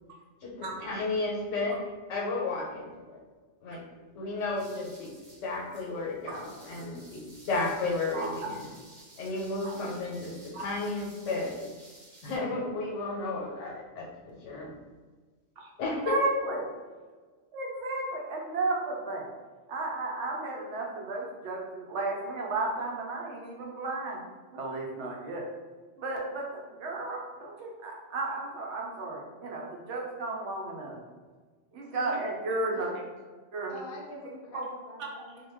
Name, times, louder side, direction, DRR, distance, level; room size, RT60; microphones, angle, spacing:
voice 1, 0.4-1.8 2.1-3.2 3.6-3.8 4.1-5.1 5.4-7.2 7.5-8.7 9.2-11.5 12.2-14.7 15.8-16.1, left 3 dB, 85° left, -2 dB, 1.0 m, -33 dB
sound 1, 4.4-12.4, right 1 dB, 45° right, 0.7 m, -54 dB
voice 2, 16.0-16.6 17.5-19.3 19.7-24.2 24.5-25.5 26.0-31.0 31.7-32.9 33.5-33.8 34.5-34.6 35.0-35.2, right 2 dB, 75° right, -1 dB, 0.9 m, -33 dB
voice 3, 33.7-35.5, left 1 dB, 65° left, -1 dB, 0.7 m, -45 dB
2.2 x 2.2 x 3.3 m, 1.4 s
omnidirectional pair, 1.2 m